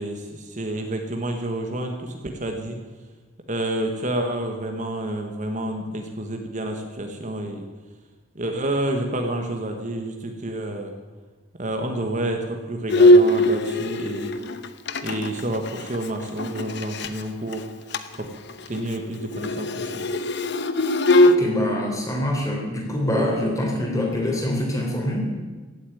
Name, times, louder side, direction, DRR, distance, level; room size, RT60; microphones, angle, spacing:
voice 1, 0.0-2.8 3.5-7.7 8.3-10.9 11.6-14.4 15.0-17.7 18.2-18.3 18.7-20.1, right 1 dB, 35° right, 4 dB, 1.3 m, -29 dB
Bowed string instrument, 12.9-17.2 17.5-17.6 17.9-18.2 18.5-21.4, left 1 dB, 55° left, 0.9 m, -20 dB
voice 2, 21.2-25.3, left 1 dB, 15° left, -1 dB, 3.6 m, -25 dB
16.0 x 8.4 x 9.1 m, 1.3 s
head